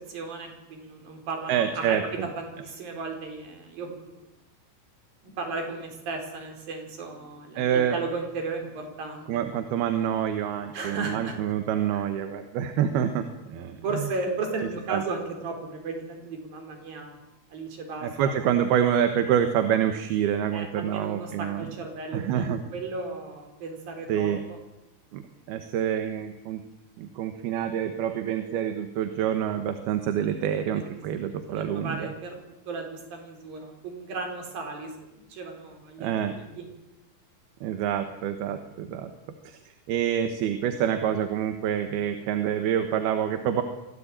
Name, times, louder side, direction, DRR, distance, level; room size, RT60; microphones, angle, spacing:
voice 1, 0.1-2.0 2.4-4.3 5.4-9.3 10.7-11.4 11.9-12.0 13.8-17.1 17.5-18.3 20.5-24.6 31.5-32.3 32.7-36.2 36.6-36.7, right 3 dB, 65° right, 3 dB, 6.2 m, -35 dB
voice 2, 1.5-2.3 7.6-8.0 9.3-14.1 14.9-15.0 18.0-21.7 22.1-22.6 24.1-24.4 25.1-26.6 27.0-32.1 36.0-36.3 37.6-39.1 39.4-43.6, right 9 dB, 80° right, 8 dB, 3.3 m, -27 dB
25.0 x 17.0 x 8.9 m, 0.93 s
omnidirectional pair, 4.4 m